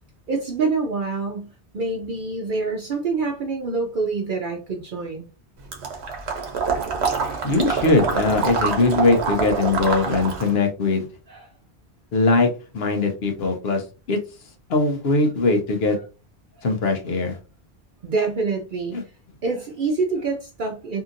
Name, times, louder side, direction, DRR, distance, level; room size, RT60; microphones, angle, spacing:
voice 1, 0.3-1.5 1.7-5.3 11.3-11.5 18.0-19.0 19.4-21.0, right 4 dB, 55° right, 2 dB, 0.7 m, -26 dB
Water / Liquid, 5.7-10.6, right 5 dB, 75° right, 1.0 m, -26 dB
voice 2, 7.4-11.1 12.1-12.5 12.7-13.8 14.1-14.2 14.7-16.0 16.6-17.4 18.9-19.0, left 3 dB, 70° left, 4 dB, 0.9 m, -20 dB
2.8 x 2.7 x 2.5 m, 0.32 s
omnidirectional pair, 1.1 m